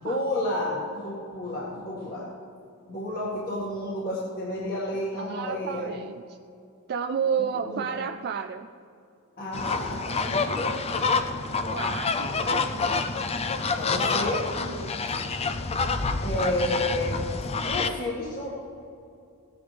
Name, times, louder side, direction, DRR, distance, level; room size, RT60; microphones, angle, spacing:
voice 1, 0.0-2.3 2.9-5.9 7.3-8.0 9.4-10.7 13.7-14.5 14.9-15.0 16.2-18.5, left 1 dB, 45° left, -6 dB, 2.0 m, -31 dB
voice 2, 4.9-6.4 6.9-8.7 11.5-13.1 14.6-15.2, right 7 dB, 45° right, 6 dB, 0.3 m, -32 dB
sound 1, 9.5-17.9, left 4 dB, 25° left, 0.5 m, -27 dB
17.5 x 10.0 x 3.4 m, 2.6 s
head